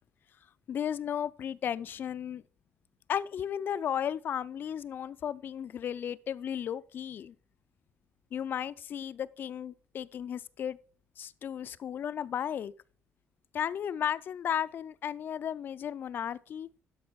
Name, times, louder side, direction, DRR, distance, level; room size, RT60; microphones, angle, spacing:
voice 1, 0.7-2.4 3.1-7.3 8.3-10.8 11.2-12.7 13.5-16.7, left 9 dB, 50° left, 0.4 m, -34 dB
12.5 x 5.4 x 4.6 m
cardioid pair, 130°, 4 cm